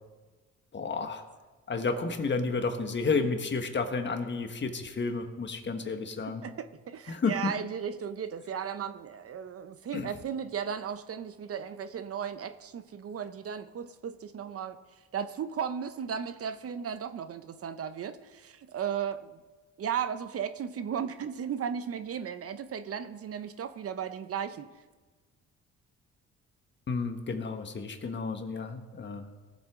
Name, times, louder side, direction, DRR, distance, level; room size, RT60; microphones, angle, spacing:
voice 1, 0.7-1.2 1.7-6.4 7.1-7.5 9.9-10.1 26.9-29.3, left 4 dB, 40° left, 6 dB, 1.4 m, -31 dB
voice 2, 6.2-14.8 15.1-19.4 19.8-24.7, right 8 dB, 50° right, 11 dB, 0.7 m, -35 dB
18.0 x 7.7 x 3.7 m, 1.3 s
cardioid pair, 90°, 30 cm